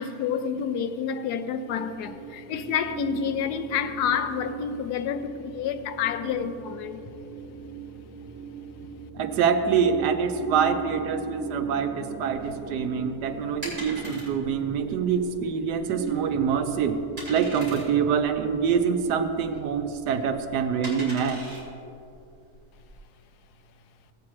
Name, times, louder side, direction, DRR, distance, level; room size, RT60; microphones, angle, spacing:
voice 1, 0.0-7.0, left 8 dB, 80° left, 1.1 m, -29 dB
sound 1, 1.7-20.4, right 5 dB, 50° right, 0.9 m, -38 dB
voice 2, 9.1-21.4, right 6 dB, 90° right, 1.3 m, -25 dB
sound 2, 12.3-23.0, equal, 30° right, 2.9 m, -42 dB
15.5 x 8.5 x 3.1 m
omnidirectional pair, 1.7 m